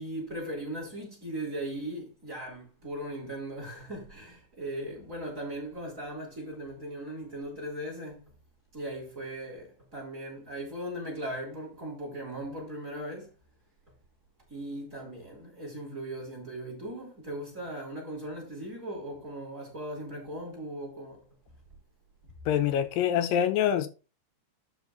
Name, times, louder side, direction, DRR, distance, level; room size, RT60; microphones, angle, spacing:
voice 1, 0.0-8.3 8.7-13.3 14.5-21.2, right 1 dB, 20° right, 4.7 m, -38 dB
voice 2, 22.5-23.9, left 9 dB, 80° left, 2.6 m, -25 dB
12.5 x 4.8 x 4.1 m
omnidirectional pair, 4.0 m